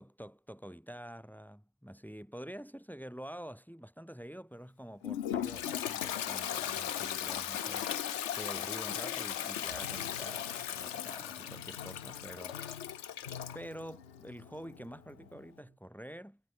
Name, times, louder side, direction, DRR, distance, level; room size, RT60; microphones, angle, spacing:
voice 1, 0.0-13.1 13.5-16.4, equal, ahead, 3.5 m, -47 dB
Toilet flush, 5.0-13.6, left 10 dB, 70° left, 0.7 m, -37 dB
Piano, 9.8-15.7, left 7 dB, 40° left, 0.9 m, -51 dB
omnidirectional pair, 2.2 m